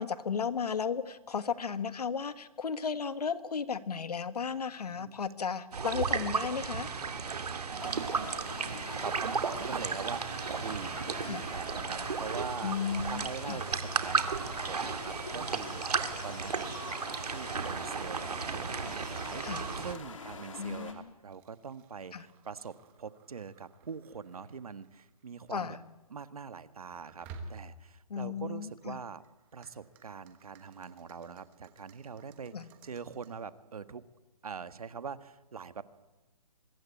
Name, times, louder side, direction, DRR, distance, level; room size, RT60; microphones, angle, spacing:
voice 1, 0.0-6.9 11.3-11.4 12.6-13.6 19.4-19.7 20.6-21.1 22.1-22.3 25.5-25.8 28.1-29.0 32.5-32.7, left 6 dB, 85° left, 12 dB, 1.7 m, -34 dB
sound 1, 5.7-19.9, right 5 dB, 90° right, 2.5 m, -34 dB
voice 2, 7.2-8.3 9.0-25.8 26.1-29.2 29.5-34.0 34.4-35.8, right 6 dB, 70° right, 12 dB, 1.6 m, -43 dB
sound 2, 7.8-20.9, left 5 dB, 55° left, 3.8 m, -46 dB
sound 3, 21.2-25.9 27.1-28.0 28.8-33.4, right 3 dB, 10° right, 1.1 m, -55 dB
24.0 x 22.0 x 8.6 m, 1.1 s
hypercardioid pair, 180°, 19 cm